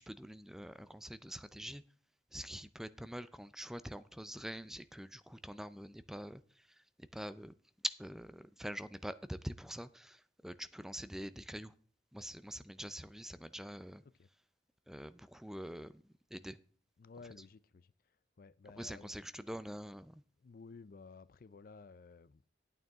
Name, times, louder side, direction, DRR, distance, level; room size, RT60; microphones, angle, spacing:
voice 1, 0.0-1.8 2.3-7.5 7.8-11.7 12.1-14.0 14.9-16.6 18.8-20.2, equal, 5° right, 0.4 m, -45 dB
voice 2, 17.0-19.1 20.4-22.5, left 4 dB, 55° left, 0.4 m, -55 dB
11.5 x 9.2 x 3.6 m
head